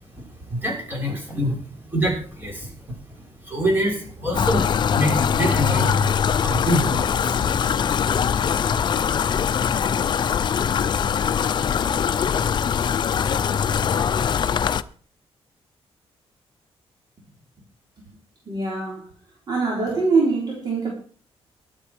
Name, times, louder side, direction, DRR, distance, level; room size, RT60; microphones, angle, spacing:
voice 1, 0.1-2.9 3.4-7.8 8.1-8.5 9.1-10.3 10.6-11.2, equal, 20° right, 6.3 m, -27 dB
sound 1, 4.3-14.8, left 7 dB, 45° left, 0.6 m, -22 dB
voice 2, 18.5-19.1 19.5-20.9, right 4 dB, 40° right, 3.6 m, -23 dB
22.0 x 7.9 x 4.9 m
wide cardioid pair, 150°, 11 cm